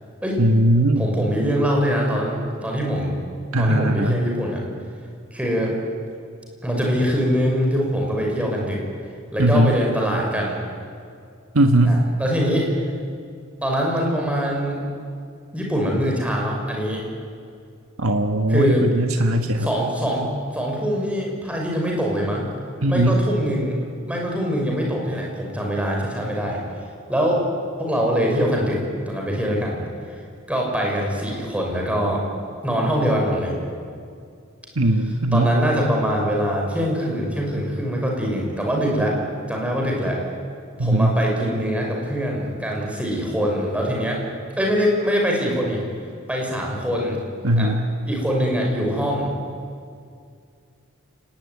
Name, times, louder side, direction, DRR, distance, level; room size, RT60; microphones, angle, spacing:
voice 1, 0.4-1.1 3.5-4.2 9.4-9.8 11.5-12.0 18.0-19.7 22.8-23.2 34.8-35.5 40.8-41.2 47.4-47.8, right 1 dB, 85° right, 4 dB, 1.5 m, -19 dB
voice 2, 1.0-3.2 3.6-4.6 5.3-5.7 6.6-8.8 9.3-10.6 11.8-12.7 13.6-14.8 15.5-17.0 18.5-18.9 19.6-20.3 20.5-22.5 22.9-23.8 24.1-26.6 27.1-27.4 27.8-29.8 30.5-32.2 32.6-33.5 35.3-39.2 39.5-40.2 40.8-44.2 44.6-45.8 46.3-47.2 47.6-47.7 48.0-49.3, equal, 5° right, -1 dB, 6.3 m, -23 dB
30.0 x 20.0 x 9.6 m, 2.3 s
head